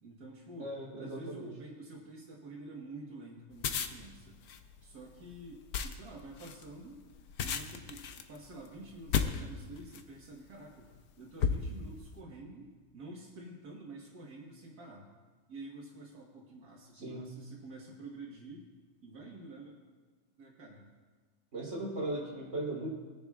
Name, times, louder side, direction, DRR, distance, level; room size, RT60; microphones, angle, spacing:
voice 1, 0.0-4.4 4.8-7.0 7.4-10.9 11.2-15.1 15.5-18.7 19.0-19.8 20.4-20.9, right 2 dB, 90° right, -3 dB, 2.0 m, -48 dB
voice 2, 0.6-1.5 16.9-17.3 21.5-22.9, right 1 dB, 50° right, -5 dB, 3.9 m, -38 dB
sound 1, 3.5-10.2 10.8-11.0 11.4-12.1, left 7 dB, 75° left, 1.2 m, -35 dB
21.0 x 10.0 x 2.4 m, 1.4 s
omnidirectional pair, 1.6 m